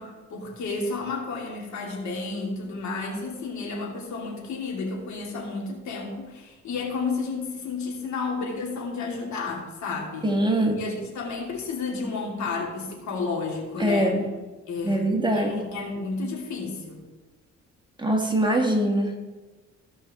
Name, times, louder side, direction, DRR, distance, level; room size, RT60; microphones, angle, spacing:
voice 1, 0.0-10.3 10.8-14.1 14.7-15.0 15.3-17.0, left 4 dB, 70° left, -1 dB, 2.7 m, -31 dB
voice 2, 10.2-10.8 13.8-14.3 14.8-15.6 18.0-19.2, right 1 dB, 15° right, 1 dB, 1.7 m, -23 dB
16.0 x 5.4 x 3.7 m, 1.2 s
cardioid pair, 90°, 30 cm